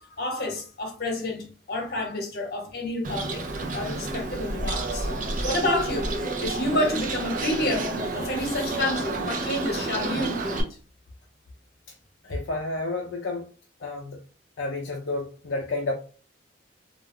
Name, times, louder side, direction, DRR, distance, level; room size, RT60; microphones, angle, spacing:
voice 1, 0.2-5.2 5.4-10.7, left 1 dB, 50° left, 0.9 m, -29 dB
Bird, 3.0-10.6, right 2 dB, 45° right, 0.5 m, -30 dB
voice 2, 12.2-13.4 13.8-14.2 14.6-15.9, left 2 dB, 70° left, 0.5 m, -30 dB
2.4 x 2.2 x 3.3 m
head